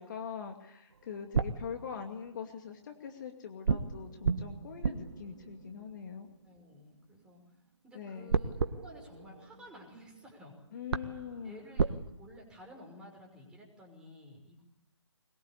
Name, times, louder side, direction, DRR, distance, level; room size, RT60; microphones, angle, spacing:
voice 1, 0.0-6.3 7.9-8.3 10.7-11.6, left 7 dB, 40° left, 4 dB, 2.5 m, -43 dB
sound 1, 0.9-2.5 3.6-7.0 8.3-10.2 10.5-10.6 10.9-12.0, right 5 dB, 55° right, 1.7 m, -34 dB
voice 2, 6.4-7.4 7.8-10.6 10.9-11.0 11.4-14.6, equal, 5° right, 0 dB, 5.8 m, -53 dB
22.5 x 22.0 x 8.4 m, 0.78 s
figure-of-eight pair, 145°, 16 cm